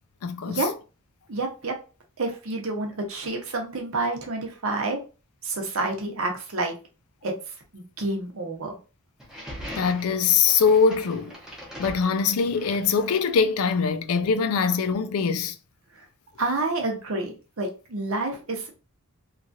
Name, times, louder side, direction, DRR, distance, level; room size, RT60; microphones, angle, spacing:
voice 1, 0.2-0.6 9.8-11.3 11.8-15.5, left 5 dB, 75° left, 0.4 m, -22 dB
voice 2, 1.3-1.7 2.2-5.0 5.4-6.7 7.2-7.3 7.7-8.7 16.4-18.7, right 2 dB, 70° right, 0.8 m, -29 dB
sound 1, 9.2-13.5, equal, ahead, 0.8 m, -41 dB
3.0 x 2.4 x 2.5 m
head